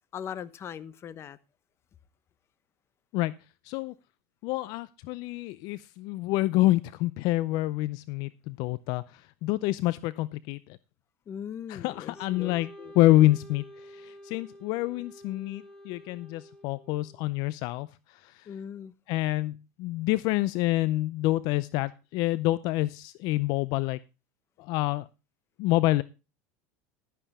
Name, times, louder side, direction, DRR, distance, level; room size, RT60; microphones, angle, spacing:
voice 1, 0.1-1.4 11.3-12.9 18.5-18.9, left 8 dB, 35° left, 0.9 m, -40 dB
voice 2, 4.4-10.8 11.7-18.5 19.1-24.0 24.6-25.1 25.6-26.0, left 17 dB, 60° left, 0.5 m, -27 dB
Wind instrument woodwind instrument, 12.1-17.3, equal, 10° left, 2.7 m, -49 dB
12.0 x 10.0 x 3.5 m
supercardioid pair, 120°, 8 cm